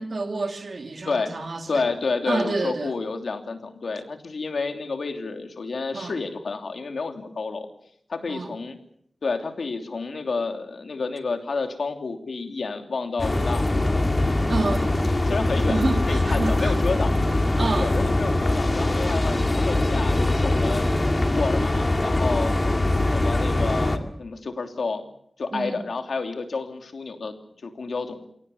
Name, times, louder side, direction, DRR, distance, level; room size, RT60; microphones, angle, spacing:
voice 1, 0.0-1.9 2.3-2.9 5.9-6.2 8.3-8.5 14.5-15.0 15.5-16.8 17.6-18.0 25.5-25.8, right 3 dB, 65° right, 2.7 m, -29 dB
voice 2, 1.0-1.4 1.7-7.7 8.1-8.8 9.2-13.8 15.3-17.1 17.8-21.0 21.3-22.5 23.1-25.0 25.4-27.4 27.6-28.3, left 4 dB, 85° left, 3.0 m, -30 dB
sound 1, 13.2-24.0, left 2 dB, 35° left, 2.3 m, -22 dB
28.5 x 18.0 x 7.1 m
wide cardioid pair, 75°, 0 cm